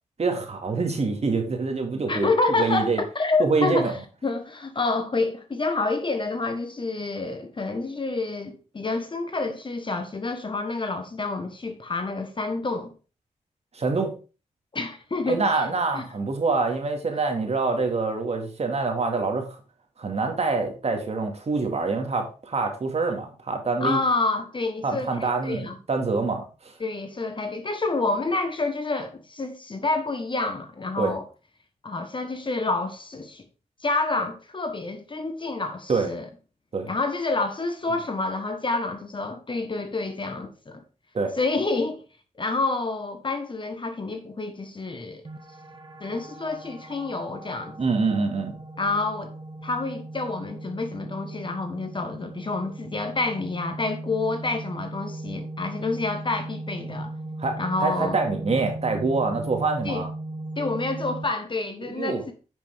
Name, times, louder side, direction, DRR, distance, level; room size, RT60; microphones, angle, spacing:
voice 1, 0.2-2.3 2.6-3.0 3.4-3.9 13.7-14.1 15.3-19.5 20.0-24.0 24.8-26.7 31.0-31.1 35.9-36.1 36.7-36.9 41.1-41.3 47.8-48.6 57.4-60.1 61.8-62.2, right 4 dB, 50° right, 2.2 m, -25 dB
voice 2, 2.1-4.0 4.2-12.9 14.7-15.6 15.9-16.0 23.8-25.8 26.8-31.2 31.8-33.4 33.8-36.3 36.9-40.8 41.3-42.0 42.4-45.2 46.0-47.8 48.8-49.3 49.6-57.1 57.6-58.2 59.8-60.0 60.6-62.3, left 3 dB, 35° left, 1.3 m, -28 dB
sound 1, 45.2-61.2, right 2 dB, 35° right, 1.6 m, -38 dB
9.4 x 6.0 x 3.6 m
cardioid pair, 60°, 14 cm